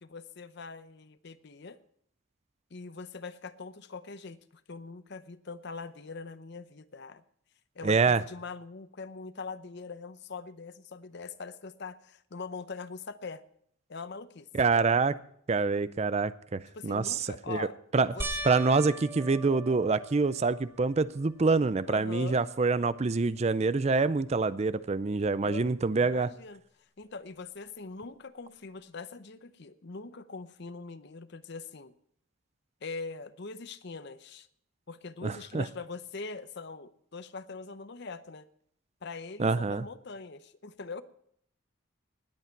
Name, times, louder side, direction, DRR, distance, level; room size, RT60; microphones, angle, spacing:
voice 1, 0.0-1.8 2.7-7.2 7.7-13.4 13.9-14.5 16.7-17.8 18.1-18.4 21.8-22.4 25.4-26.6 27.0-31.9 32.8-34.5 34.9-38.5 39.0-41.0, left 4 dB, 55° left, 13 dB, 0.7 m, -42 dB
voice 2, 7.8-8.2 14.5-15.2 15.5-17.7 17.9-18.1 18.4-26.3 35.2-35.7 39.4-39.8, right 4 dB, 30° right, 16 dB, 0.4 m, -26 dB
sound 1, 18.2-20.8 21.4-22.0 22.3-22.4 25.6-25.7, right 1 dB, 15° right, 1.1 m, -40 dB
19.5 x 8.4 x 4.5 m, 0.70 s
head